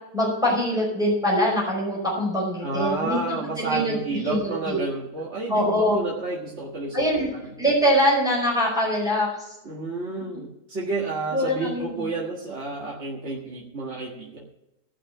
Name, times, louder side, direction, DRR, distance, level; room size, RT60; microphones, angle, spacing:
voice 1, 0.1-4.8 5.5-6.0 6.9-7.3 7.6-9.6 11.3-12.0, equal, ahead, -4 dB, 5.1 m, -23 dB
voice 2, 2.6-7.4 9.6-14.4, right 3 dB, 45° right, -4 dB, 1.9 m, -30 dB
17.5 x 6.2 x 7.2 m, 0.91 s
omnidirectional pair, 1.7 m